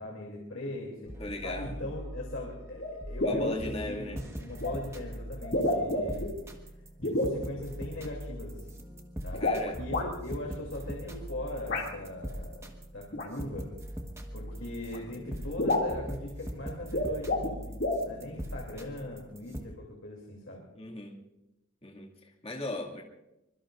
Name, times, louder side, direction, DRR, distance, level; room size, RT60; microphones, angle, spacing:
voice 1, 0.0-1.1 1.4-6.2 7.0-8.8 9.2-9.5 9.7-13.7 14.3-17.8 18.0-20.6, left 1 dB, 65° left, -1 dB, 3.0 m, -40 dB
sound 1, 1.1-19.7, equal, 15° right, 1.4 m, -42 dB
voice 2, 1.2-1.9 3.2-4.2 9.4-9.8 20.7-21.2 21.8-23.0, left 2 dB, 30° left, 0 dB, 2.3 m, -37 dB
sound 2, 2.8-2.9 3.2-3.6 4.6-4.7 5.4-6.3 7.0-7.4 9.3-10.1 11.7-11.9 13.1-13.3 14.5-14.6 14.9-15.0 15.2-15.3 15.6-16.0 16.8-17.5 17.8-18.0, left 1 dB, 50° left, 2.6 m, -29 dB
25.0 x 22.5 x 2.6 m, 0.95 s
head